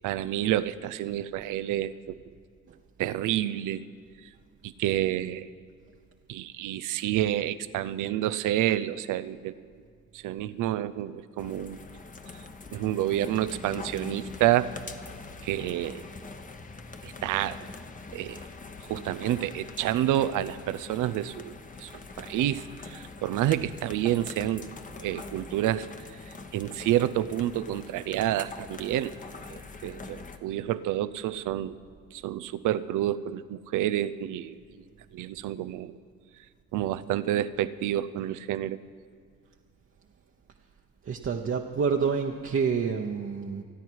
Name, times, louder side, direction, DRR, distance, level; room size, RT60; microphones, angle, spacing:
voice 1, 0.0-2.2 3.0-3.8 4.6-5.5 6.3-9.6 10.1-11.8 12.7-14.7 15.4-16.0 17.0-17.6 18.1-18.4 18.9-21.5 21.8-21.9 22.2-24.7 25.0-25.9 26.5-29.1 29.5-31.8 32.1-34.6 35.1-35.9 36.7-38.8, right 13 dB, 85° right, 15 dB, 0.6 m, -29 dB
sound 1, 11.4-30.4, left 3 dB, 25° left, 1.0 m, -43 dB
voice 2, 41.0-43.6, right 6 dB, 45° right, 2 dB, 1.0 m, -28 dB
28.5 x 9.6 x 4.7 m, 2.2 s
cardioid pair, 90°, 30 cm